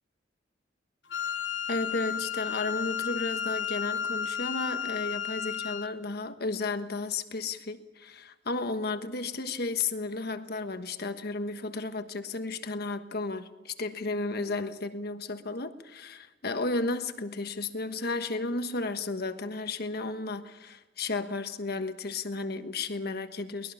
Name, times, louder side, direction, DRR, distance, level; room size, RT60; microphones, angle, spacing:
Wind instrument woodwind instrument, 1.1-5.9, left 8 dB, 85° left, 1.1 m, -33 dB
voice 1, 1.7-23.7, left 3 dB, 60° left, 8 dB, 1.4 m, -33 dB
23.0 x 20.0 x 5.7 m, 1.2 s
head